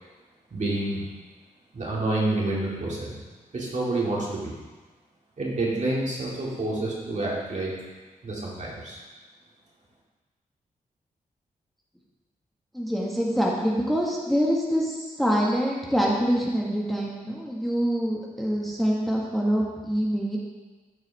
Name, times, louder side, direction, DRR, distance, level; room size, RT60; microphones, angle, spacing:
voice 1, 0.5-1.0 1.7-3.1 3.5-4.5 5.4-7.7 8.2-9.0, right 2 dB, 55° right, -4 dB, 2.4 m, -28 dB
voice 2, 12.7-20.4, equal, ahead, -4 dB, 1.7 m, -25 dB
12.0 x 4.7 x 3.5 m, 1.3 s
cardioid pair, 55°, 15 cm